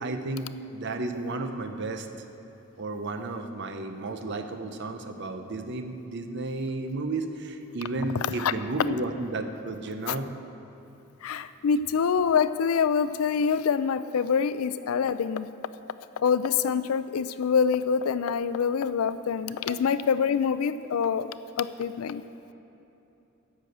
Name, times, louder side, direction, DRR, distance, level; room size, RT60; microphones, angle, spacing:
voice 1, 0.0-2.1 2.8-10.3, right 2 dB, 55° right, 7 dB, 0.7 m, -33 dB
voice 2, 11.2-15.5 16.2-22.2, left 6 dB, 85° left, 14 dB, 0.4 m, -25 dB
10.5 x 6.2 x 7.8 m, 3.0 s
head